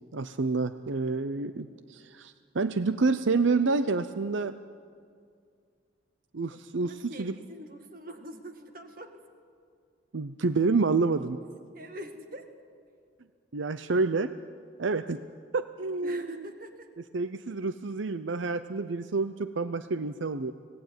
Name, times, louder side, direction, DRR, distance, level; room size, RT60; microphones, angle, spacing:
voice 1, 0.1-4.5 6.3-7.4 10.1-11.4 13.5-14.3 14.8-15.2 15.5-16.5 17.1-20.5, right 3 dB, 85° right, 12 dB, 0.7 m, -28 dB
voice 2, 6.5-9.2 11.7-12.5 16.0-16.9, equal, 45° right, 6 dB, 2.1 m, -44 dB
25.5 x 18.5 x 9.4 m, 2.2 s
head